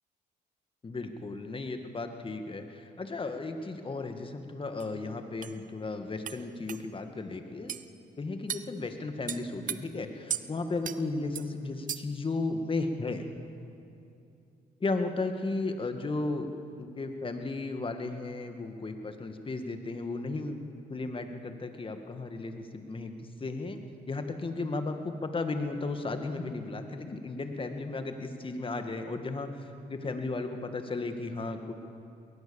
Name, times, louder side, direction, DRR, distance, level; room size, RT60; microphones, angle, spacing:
voice 1, 0.8-7.8 8.2-13.3 14.8-16.5 16.8-20.6 20.9-23.8 24.1-31.7, left 3 dB, 30° left, 6 dB, 2.0 m, -35 dB
sound 1, 4.8-4.9 5.4-5.6 6.3-6.4 6.7-6.8 7.7-7.9 8.5-8.7 9.3-9.8 10.3-10.5 10.8-11.0 11.4-11.5 11.9-12.2, right 9 dB, 55° right, 0.8 m, -35 dB
21.0 x 19.0 x 7.2 m, 2.6 s
cardioid pair, 75°, 16 cm